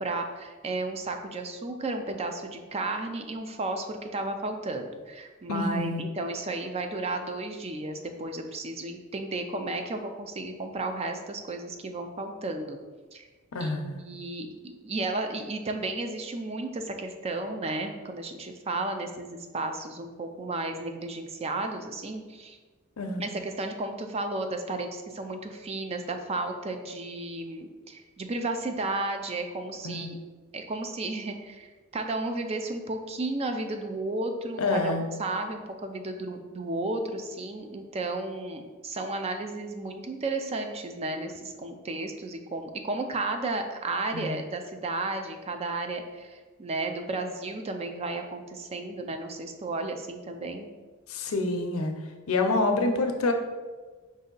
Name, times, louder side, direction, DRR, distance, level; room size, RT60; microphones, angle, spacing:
voice 1, 0.0-12.8 13.1-13.3 13.6-22.6 23.2-30.2 30.5-50.7, right 2 dB, 30° right, 5 dB, 0.4 m, -33 dB
voice 2, 5.5-6.0 13.5-14.0 23.0-23.2 29.8-30.1 34.6-35.1 44.1-44.4 51.1-51.9 52.3-53.3, left 2 dB, 80° left, 5 dB, 0.6 m, -27 dB
5.0 x 2.7 x 3.8 m, 1.3 s
head